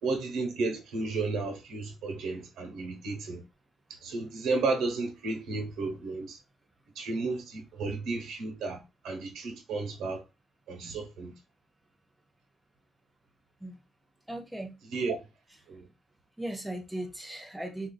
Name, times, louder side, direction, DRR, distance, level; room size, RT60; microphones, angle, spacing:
voice 1, 0.0-3.4 4.0-6.4 6.9-8.8 9.0-10.2 10.7-11.3 14.9-15.2 15.7-15.9, right 3 dB, 85° right, 1.1 m, -33 dB
voice 2, 14.3-14.8 16.4-17.9, right 1 dB, 5° right, 0.4 m, -37 dB
4.3 x 2.5 x 2.3 m
cardioid pair, 155°, 0 cm